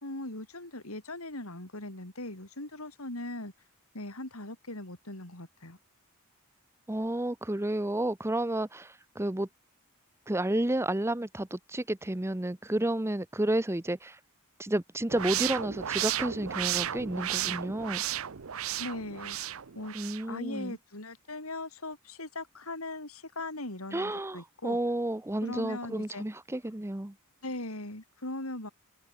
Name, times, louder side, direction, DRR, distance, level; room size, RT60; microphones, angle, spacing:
voice 1, 0.0-3.5 3.9-5.8 18.8-19.4 19.8-19.9 20.3-24.8 25.4-26.2 27.4-28.7, left 2 dB, 80° left, 5.3 m, -39 dB
voice 2, 6.9-9.5 10.3-14.2 14.6-18.0 19.9-20.8 23.9-27.1, right 1 dB, 10° right, 0.7 m, -31 dB
sound 1, 15.1-20.3, right 11 dB, 75° right, 0.8 m, -33 dB
open air
head